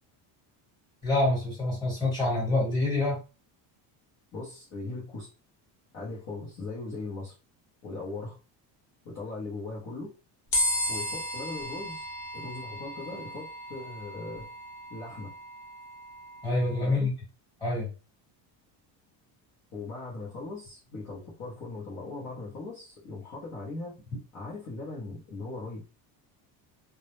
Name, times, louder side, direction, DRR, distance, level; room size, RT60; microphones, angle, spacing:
voice 1, 1.0-3.2 16.4-17.1 17.6-17.9, left 2 dB, 10° left, -7 dB, 1.2 m, -26 dB
voice 2, 4.3-5.3 5.9-7.3 7.8-8.3 9.0-10.1 10.9-12.1 12.3-14.5 14.9-15.3 16.8-17.1 19.7-24.0 24.3-25.8, left 3 dB, 35° left, -6 dB, 0.7 m, -39 dB
sound 1, 10.5-16.9, left 1 dB, 55° left, 1.1 m, -35 dB
2.2 x 2.0 x 3.0 m, 0.32 s
cardioid pair, 180°, 47 cm